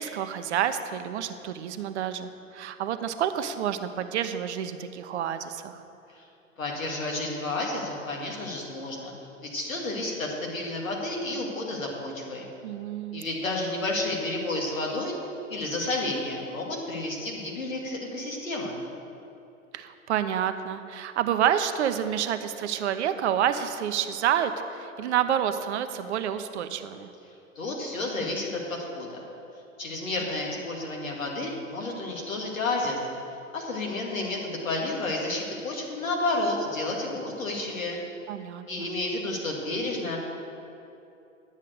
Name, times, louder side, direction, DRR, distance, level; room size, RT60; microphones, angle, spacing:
voice 1, 0.0-5.8 12.6-13.2 19.7-27.1 30.2-30.3 38.3-38.9, right 9 dB, 55° right, 10 dB, 0.7 m, -29 dB
voice 2, 6.6-9.1 9.4-12.5 13.1-15.2 15.5-18.8 27.6-29.2 29.8-33.0 33.5-38.0 38.7-40.2, left 2 dB, 75° left, -1 dB, 2.2 m, -31 dB
10.5 x 7.5 x 6.5 m, 2.8 s
figure-of-eight pair, 90°, 41 cm